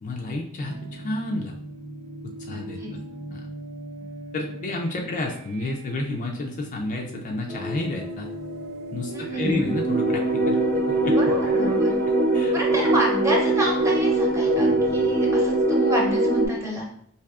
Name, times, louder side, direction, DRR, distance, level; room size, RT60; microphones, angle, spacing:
voice 1, 0.0-1.5 2.2-2.8 3.3-3.5 4.3-8.3 8.9-10.6 10.9-11.1 12.3-12.5, left 2 dB, 35° left, 1 dB, 0.3 m, -30 dB
sound 1, 0.6-15.8, right 1 dB, 70° right, 0.5 m, -41 dB
voice 2, 2.5-2.9 9.0-9.7 11.1-11.9 12.5-16.9, right 1 dB, 15° right, -3 dB, 0.8 m, -29 dB
sound 2, 7.5-8.5 9.0-16.5, right 2 dB, 45° right, 0.8 m, -22 dB
4.7 x 2.7 x 2.3 m, 0.70 s
head